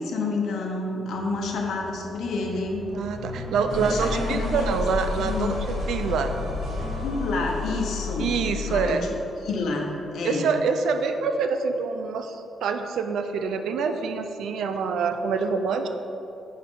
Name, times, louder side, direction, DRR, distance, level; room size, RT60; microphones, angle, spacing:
voice 1, 0.0-2.8 3.7-4.7 5.2-5.5 7.0-8.3 8.6-9.1 9.4-10.5, left 3 dB, 70° left, 1 dB, 1.1 m, -29 dB
sound 1, 1.1-8.9, left 3 dB, 60° right, 1.7 m, -32 dB
voice 2, 2.9-6.4 8.2-9.1 10.2-15.9, right 5 dB, 85° right, 7 dB, 0.5 m, -26 dB
10.0 x 4.7 x 3.8 m, 3.0 s
cardioid pair, 145°, 0 cm